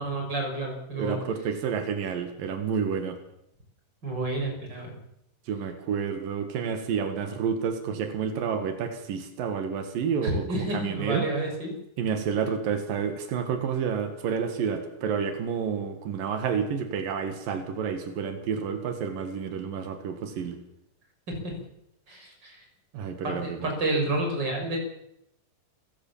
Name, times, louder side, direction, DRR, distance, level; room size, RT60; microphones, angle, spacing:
voice 1, 0.0-1.2 4.0-4.9 10.2-11.7 21.3-21.5 22.1-22.7 23.2-24.8, right 2 dB, 30° right, 2 dB, 6.8 m, -30 dB
voice 2, 1.0-3.2 5.5-11.3 12.0-20.6 22.9-23.6, right 6 dB, 90° right, 7 dB, 3.5 m, -29 dB
28.5 x 16.5 x 7.4 m, 0.82 s
omnidirectional pair, 3.8 m